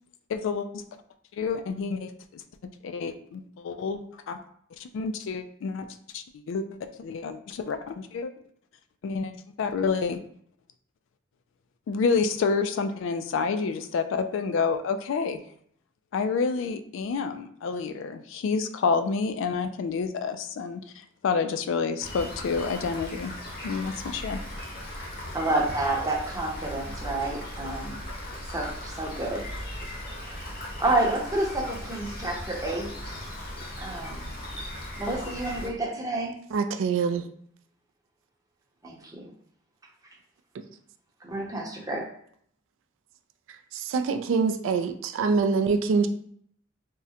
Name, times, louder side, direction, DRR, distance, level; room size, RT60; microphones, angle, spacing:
voice 1, 0.3-0.8 1.3-2.4 2.8-4.4 4.8-5.9 6.1-8.3 9.0-9.3 9.6-10.2 11.9-15.4 16.1-23.3 23.6-24.4, left 5 dB, 70° left, 9 dB, 0.3 m, -29 dB
Rain, 22.0-35.7, left 1 dB, 50° left, 0.7 m, -38 dB
voice 2, 25.3-28.0 28.5-29.5 30.2-33.2 33.8-34.3 35.0-36.3 38.8-39.3 41.2-42.0, right 2 dB, 15° right, -2 dB, 0.7 m, -29 dB
voice 3, 36.5-37.3 43.7-46.1, right 5 dB, 70° right, 7 dB, 0.3 m, -25 dB
3.6 x 2.1 x 2.8 m, 0.63 s
head